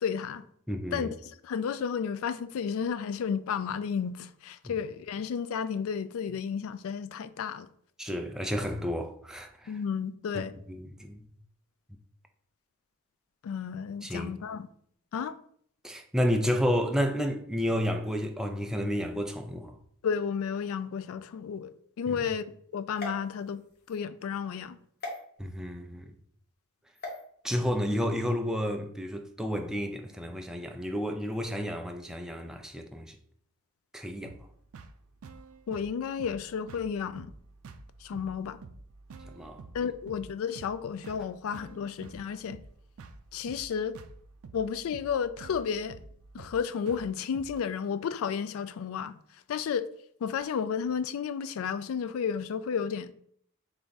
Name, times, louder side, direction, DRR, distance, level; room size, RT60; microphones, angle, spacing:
voice 1, 0.0-0.4 0.9-7.7 9.7-10.5 13.4-14.7 15.1-15.4 20.0-21.7 22.0-22.5 22.7-23.6 23.9-24.8 35.7-37.3 38.0-38.6 39.7-42.6 43.3-44.0 44.5-46.0 46.3-49.2 49.5-49.9 50.2-53.1, left 7 dB, 65° left, 0.3 m, -32 dB
voice 2, 0.7-1.1 4.6-4.7 8.0-9.7 10.3-10.4 10.7-11.2 14.0-14.3 15.8-19.7 25.4-26.1 27.4-33.2 33.9-34.3 39.3-39.6, equal, 5° right, 0.4 m, -31 dB
sound 1, 22.9-24.0 25.0-25.2 26.9-27.2, left 2 dB, 45° left, 1.1 m, -40 dB
sound 2, 34.3-47.7, right 4 dB, 75° right, 0.4 m, -49 dB
3.7 x 3.4 x 3.9 m
head